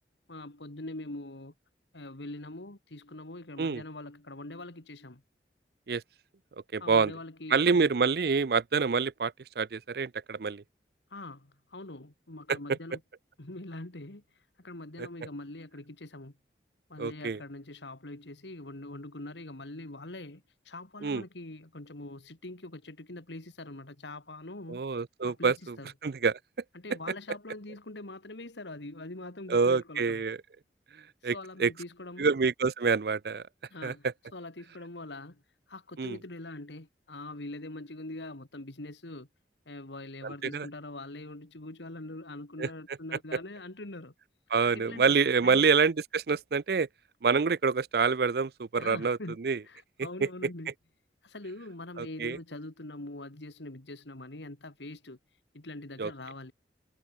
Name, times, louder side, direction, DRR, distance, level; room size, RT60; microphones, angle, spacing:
voice 1, 0.3-1.5 1.9-5.2 6.8-7.9 11.1-13.0 13.4-14.2 14.6-16.4 16.9-24.9 25.2-25.9 26.7-30.2 31.3-32.3 33.7-34.1 34.3-35.4 35.7-39.3 39.7-44.1 44.7-45.1 45.4-45.7 48.8-49.4 49.7-50.7 51.2-55.2 55.5-56.5, left 2 dB, 80° left, 2.1 m, -43 dB
voice 2, 6.7-7.1 7.5-10.6 12.5-12.6 15.0-15.1 17.0-17.4 21.0-21.2 24.7-25.8 26.0-26.4 29.5-30.4 31.2-31.7 32.2-33.4 33.8-34.1 36.0-36.2 40.2-40.7 42.6-42.7 44.5-46.9 47.2-49.6 50.2-50.3 52.0-52.4 56.0-56.1, right 5 dB, 60° right, 0.5 m, -27 dB
head